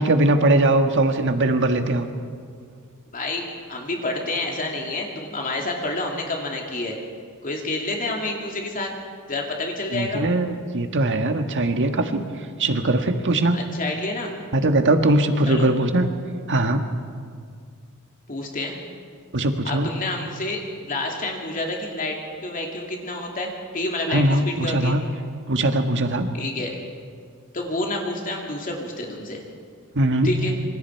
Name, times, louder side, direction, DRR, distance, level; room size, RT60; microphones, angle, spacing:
voice 1, 0.0-2.1 9.9-12.2 12.6-13.6 14.5-16.1 16.5-16.8 19.3-19.9 24.1-25.0 25.5-26.3 29.9-30.3, right 2 dB, 55° right, 6 dB, 1.7 m, -20 dB
voice 2, 3.1-3.4 3.7-7.0 7.4-8.9 9.3-10.3 13.5-14.3 15.4-15.7 18.3-18.8 19.6-25.0 26.3-26.8 27.5-29.4 30.2-30.5, left 2 dB, 40° left, 0 dB, 2.6 m, -29 dB
26.5 x 25.5 x 4.7 m, 2.1 s
head